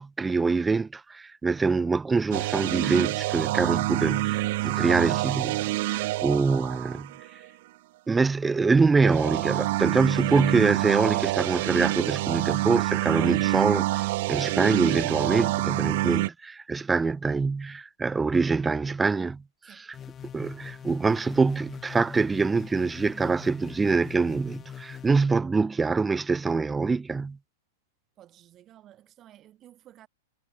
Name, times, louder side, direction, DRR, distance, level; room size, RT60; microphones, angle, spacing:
voice 1, 0.0-7.1 8.1-19.4 20.3-27.4, right 4 dB, 10° right, 0.8 m, -25 dB
sound 1, 2.3-7.5 9.0-16.3, right 18 dB, 50° right, 0.8 m, -27 dB
sound 2, 19.9-25.1, left 9 dB, 15° left, 1.2 m, -42 dB
voice 2, 28.2-30.1, right 13 dB, 25° right, 6.0 m, -53 dB
supercardioid pair, 160°, 0 cm